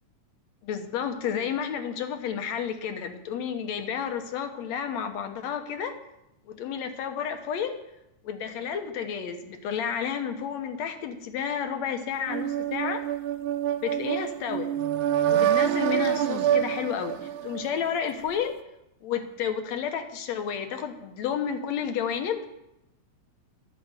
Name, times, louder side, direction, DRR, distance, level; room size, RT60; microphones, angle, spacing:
voice 1, 0.6-6.0 6.5-7.8 8.2-13.0 13.8-14.7 15.2-18.6 19.0-22.4, left 8 dB, 70° left, 7 dB, 2.3 m, -31 dB
sound 1, 12.3-18.1, right 10 dB, 85° right, 2.1 m, -26 dB
12.5 x 8.1 x 8.1 m, 0.87 s
omnidirectional pair, 3.3 m